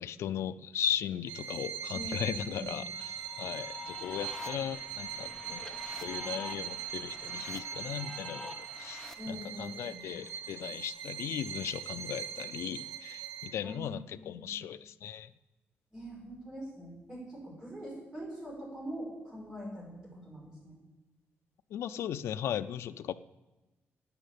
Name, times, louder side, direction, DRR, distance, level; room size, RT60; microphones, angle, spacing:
voice 1, 0.0-15.3 21.7-23.1, left 10 dB, 70° left, 13 dB, 0.4 m, -37 dB
Bowed string instrument, 1.3-13.8, right 8 dB, 85° right, 1.0 m, -41 dB
voice 2, 1.9-2.7 9.2-10.0 13.6-14.5 15.9-20.7, equal, 15° right, -4 dB, 5.5 m, -43 dB
sound 1, 2.9-9.1, left 3 dB, 10° left, 1.0 m, -46 dB
9.8 x 9.1 x 8.3 m, 1.1 s
wide cardioid pair, 175°, 5 cm